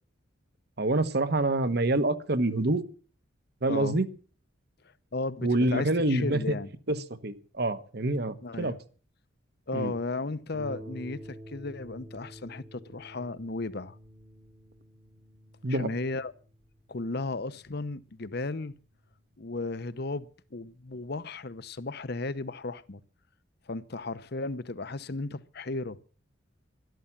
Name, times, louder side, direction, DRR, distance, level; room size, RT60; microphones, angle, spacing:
voice 1, 0.8-2.8 3.6-4.1 5.4-6.5 6.9-7.0 7.2-8.7 9.7-9.9 15.6-15.9, right 2 dB, 50° right, 1.2 m, -26 dB
voice 2, 5.1-6.7 8.4-8.8 9.7-14.0 15.7-16.3 16.9-18.7 19.4-23.0 23.7-26.0, left 3 dB, 50° left, 0.8 m, -35 dB
Harp, 10.5-19.7 20.5-20.6 21.1-21.2, equal, 90° right, 6.3 m, -49 dB
13.0 x 12.5 x 7.3 m
head